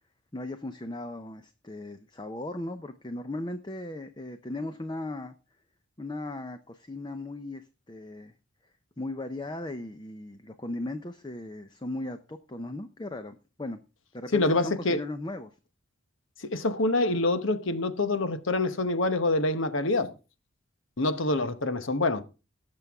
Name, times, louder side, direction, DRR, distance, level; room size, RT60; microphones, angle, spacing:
voice 1, 0.3-5.3 6.0-8.3 9.0-13.8 14.1-15.5, left 2 dB, 20° left, 0.6 m, -37 dB
voice 2, 14.3-15.0 16.4-20.1 21.0-22.2, left 2 dB, 65° left, 1.0 m, -26 dB
18.5 x 6.8 x 3.5 m
head